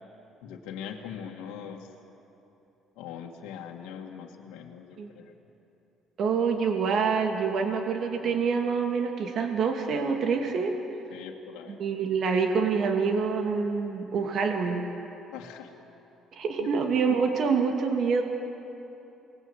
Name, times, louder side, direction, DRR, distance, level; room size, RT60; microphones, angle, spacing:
voice 1, 0.4-1.9 3.0-5.3 11.1-11.8 15.3-15.7 16.6-16.7, left 8 dB, 80° left, 0 dB, 2.0 m, -41 dB
voice 2, 6.2-10.7 11.7-14.8 16.4-18.2, right 5 dB, 60° right, 3 dB, 2.6 m, -26 dB
28.0 x 20.5 x 8.1 m, 2.9 s
supercardioid pair, 75°, 0 cm